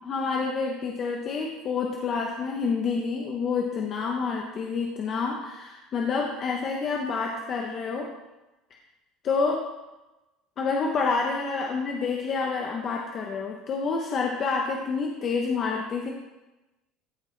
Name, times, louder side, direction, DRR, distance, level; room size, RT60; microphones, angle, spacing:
voice 1, 0.0-8.1 9.2-9.7 10.6-16.1, left 4 dB, 30° left, 0 dB, 0.7 m, -28 dB
14.0 x 4.6 x 3.8 m, 1.0 s
cardioid pair, 175°, 0 cm